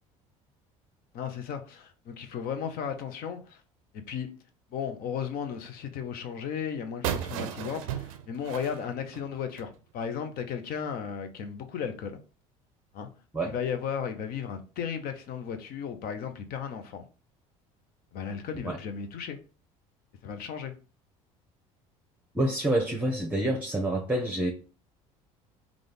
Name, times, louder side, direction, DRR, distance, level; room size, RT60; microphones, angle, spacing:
voice 1, 1.1-3.6 3.9-4.3 4.7-12.2 12.9-13.1 13.4-17.1 18.1-19.4 20.2-20.7, left 7 dB, 60° left, 0.7 m, -35 dB
sound 1, 7.0-9.8, right 10 dB, 85° right, 0.4 m, -35 dB
voice 2, 22.3-24.5, right 1 dB, 10° right, 0.8 m, -27 dB
3.8 x 2.4 x 3.4 m
hypercardioid pair, 75°, 17 cm